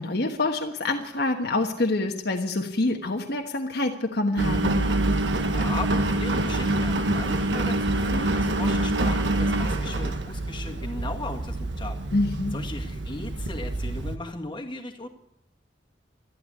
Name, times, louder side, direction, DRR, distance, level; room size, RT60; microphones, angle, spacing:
voice 1, 0.0-4.8 12.1-12.5, left 2 dB, 65° left, 2 dB, 1.4 m, -26 dB
Engine, 4.4-14.2, right 2 dB, 80° right, 1.5 m, -26 dB
voice 2, 5.3-12.0 12.5-15.1, left 2 dB, 25° left, 3 dB, 1.9 m, -37 dB
13.5 x 12.0 x 8.6 m, 0.76 s
head